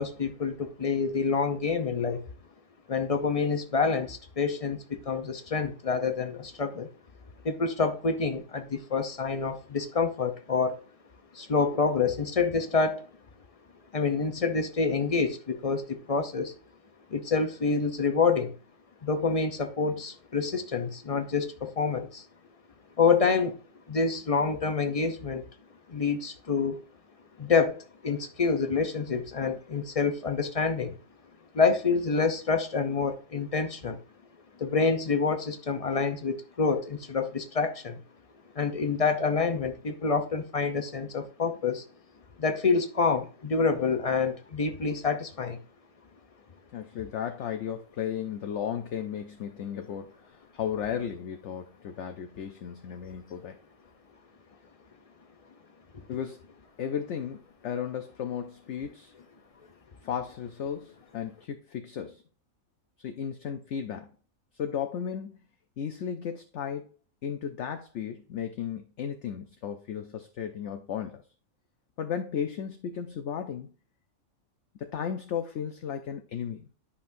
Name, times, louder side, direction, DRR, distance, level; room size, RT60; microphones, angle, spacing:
voice 1, 0.0-2.2 2.9-6.9 7.4-10.8 11.3-13.0 13.9-16.5 17.1-18.6 19.0-22.2 23.0-23.6 23.9-25.4 25.9-26.8 27.4-31.0 31.5-34.0 34.6-38.0 38.5-41.8 42.4-45.6, left 5 dB, 45° left, 0.4 m, -27 dB
voice 2, 46.7-53.6 56.1-56.5 56.8-59.1 60.0-62.2 63.0-64.1 64.5-65.4 65.8-66.9 67.2-71.2 72.0-73.7 74.8-76.7, left 8 dB, 65° left, 0.9 m, -35 dB
10.5 x 5.6 x 2.6 m
omnidirectional pair, 1.5 m